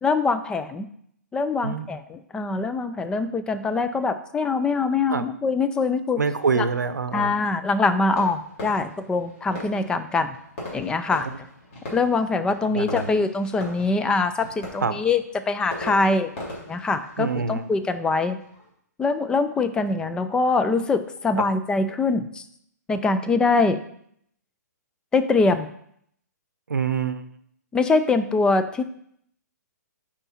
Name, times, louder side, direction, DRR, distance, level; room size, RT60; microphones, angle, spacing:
voice 1, 0.0-0.9 1.3-6.2 6.6-6.7 7.1-10.4 10.7-11.3 11.9-16.3 16.7-18.4 19.0-22.4 22.9-23.8 25.1-25.7 27.7-28.8, left 3 dB, 10° left, 10 dB, 0.4 m, -23 dB
voice 2, 6.2-7.3 12.6-13.1 14.8-15.0 17.2-17.6 21.4-21.5 26.7-27.2, right 5 dB, 75° right, 12 dB, 0.7 m, -25 dB
Fireworks, 8.1-18.7, left 1 dB, 40° left, 3.4 m, -40 dB
8.8 x 5.0 x 4.2 m, 0.69 s
figure-of-eight pair, 125°, 9 cm